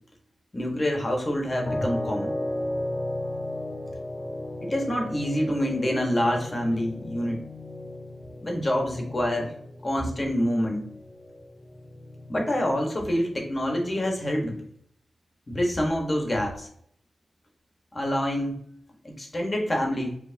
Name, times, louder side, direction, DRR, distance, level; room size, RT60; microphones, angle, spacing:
voice 1, 0.5-2.4 4.6-7.4 8.4-9.5 9.8-10.8 12.3-14.6 15.5-16.7 17.9-18.6 19.0-20.2, equal, 35° left, 1 dB, 1.3 m, -26 dB
sound 1, 1.7-14.6, left 1 dB, 5° left, 0.8 m, -36 dB
4.6 x 3.0 x 2.7 m, 0.66 s
cardioid pair, 55°, 0 cm